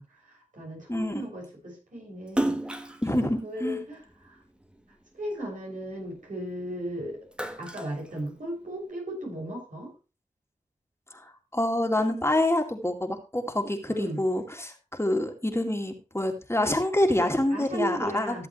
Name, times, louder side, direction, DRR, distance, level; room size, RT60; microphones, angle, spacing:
voice 1, 0.0-4.4 5.1-7.2 7.6-9.9 13.9-14.2 17.5-18.5, equal, 80° right, -2 dB, 7.2 m, -36 dB
voice 2, 0.9-1.2 3.0-3.8 11.2-18.5, left 1 dB, 20° left, 3 dB, 2.3 m, -27 dB
Splash splatter, 2.3-4.8 5.3-6.7 7.1-8.8, right 1 dB, 10° right, 1.3 m, -33 dB
14.5 x 7.7 x 3.3 m, 0.32 s
cardioid pair, 40°, 13 cm